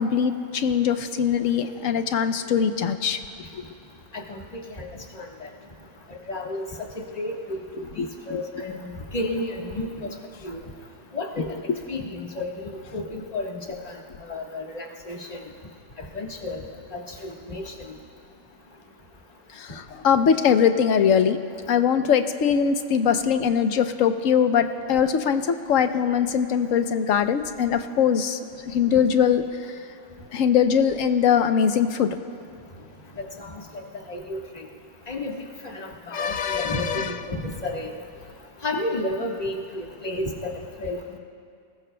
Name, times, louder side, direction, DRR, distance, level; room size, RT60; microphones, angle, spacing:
voice 1, 0.0-3.2 8.0-8.4 19.5-21.4 21.7-28.4 28.7-29.4 30.3-32.2 36.1-37.2, left 7 dB, 90° left, 9 dB, 1.1 m, -22 dB
voice 2, 4.1-4.9 5.1-5.5 6.3-6.7 7.2-9.9 10.4-10.6 11.1-11.5 11.9-13.6 13.8-14.0 14.3-15.4 16.1-16.6 16.9-17.9 33.2-34.7 35.1-35.3 35.6-37.9 38.6-40.3 40.8-41.0, left 2 dB, 30° left, -1 dB, 1.5 m, -32 dB
29.0 x 19.5 x 2.2 m, 2.4 s
omnidirectional pair, 1.3 m